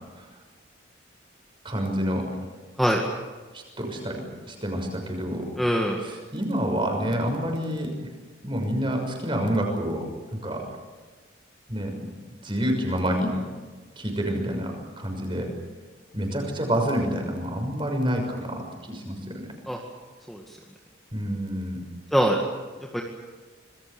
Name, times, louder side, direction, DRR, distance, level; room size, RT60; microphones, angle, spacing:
voice 1, 1.6-2.2 3.5-5.5 6.0-7.9 8.4-10.0 10.3-10.6 11.7-12.1 12.4-13.3 14.0-15.5 16.1-19.5 21.1-21.8, equal, 25° right, 3 dB, 6.3 m, -28 dB
voice 2, 5.6-6.0 19.7-19.8 20.3-20.4 22.1-22.4 22.9-23.0, equal, ahead, -1 dB, 2.0 m, -22 dB
26.5 x 21.5 x 7.1 m, 1.3 s
head